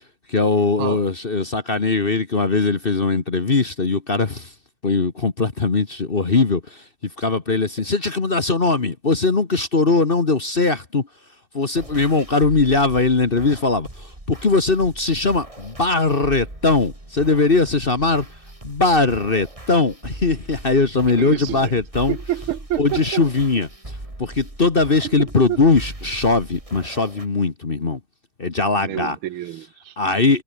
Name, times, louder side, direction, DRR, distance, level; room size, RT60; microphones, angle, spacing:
voice 1, 0.3-4.5 4.8-6.6 7.2-11.1 11.5-18.3 18.6-22.2 22.8-23.7 24.2-28.0 28.4-29.2 30.0-30.4, left 3 dB, 30° left, 1.3 m, -20 dB
sound 1, 11.7-27.3, right 1 dB, 15° right, 3.9 m, -39 dB
voice 2, 21.2-21.7 22.1-23.2 25.0-25.1 25.5-25.6 28.8-29.9, right 13 dB, 80° right, 1.6 m, -28 dB
omnidirectional pair, 2.4 m